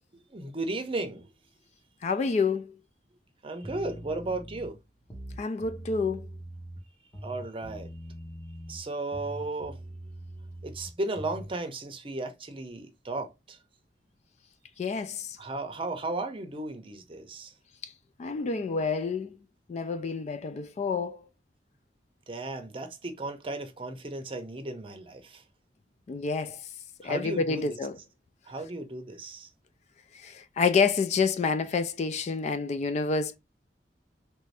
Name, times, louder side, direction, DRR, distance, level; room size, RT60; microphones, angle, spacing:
voice 1, 0.1-1.3 3.4-4.8 7.2-7.9 8.7-9.8 10.6-13.6 15.4-17.5 22.3-25.4 27.0-27.8 28.5-29.5, right 2 dB, 30° right, 0.6 m, -35 dB
voice 2, 2.0-2.8 5.4-6.3 14.8-15.4 17.8-17.9 18.2-19.4 19.7-21.2 26.1-26.6 27.0-28.0 30.1-33.4, left 4 dB, 40° left, 0.3 m, -28 dB
sound 1, 3.6-4.7 5.0-6.8 7.1-8.9 9.1-11.5, right 1 dB, 20° left, 0.9 m, -42 dB
3.3 x 2.6 x 3.2 m
head